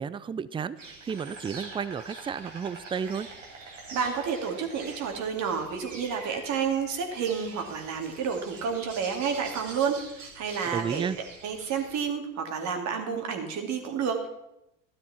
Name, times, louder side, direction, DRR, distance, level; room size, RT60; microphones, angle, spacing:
voice 1, 0.0-3.3 10.7-11.2, right 7 dB, 15° right, 17 dB, 0.5 m, -32 dB
Insect, 0.8-12.0, right 3 dB, 90° right, 2.6 m, -45 dB
voice 2, 3.7-11.0 11.4-14.3, right 6 dB, 50° right, 3 dB, 2.7 m, -30 dB
13.5 x 12.0 x 4.4 m, 0.87 s
hypercardioid pair, 75°, 37 cm